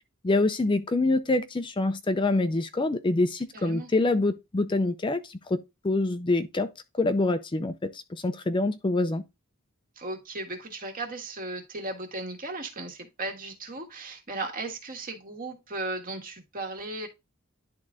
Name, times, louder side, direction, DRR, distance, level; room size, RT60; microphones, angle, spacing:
voice 1, 0.2-5.6 5.8-6.7 7.0-9.2, left 2 dB, 25° left, 0.4 m, -26 dB
voice 2, 3.5-3.9 9.9-17.1, right 2 dB, 40° right, 1.7 m, -36 dB
10.5 x 3.8 x 3.6 m
head